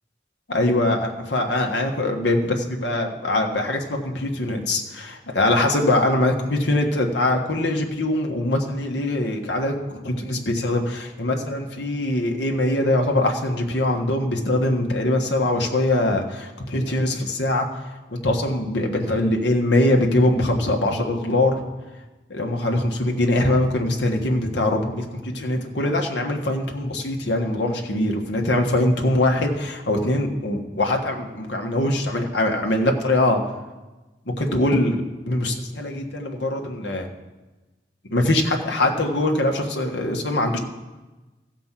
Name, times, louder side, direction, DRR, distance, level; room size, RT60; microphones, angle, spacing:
voice 1, 0.5-17.7 18.1-21.6 22.3-33.4 34.4-35.0 35.3-37.1 38.1-40.6, left 1 dB, 80° left, 2 dB, 1.5 m, -22 dB
15.5 x 5.3 x 7.5 m, 1.1 s
head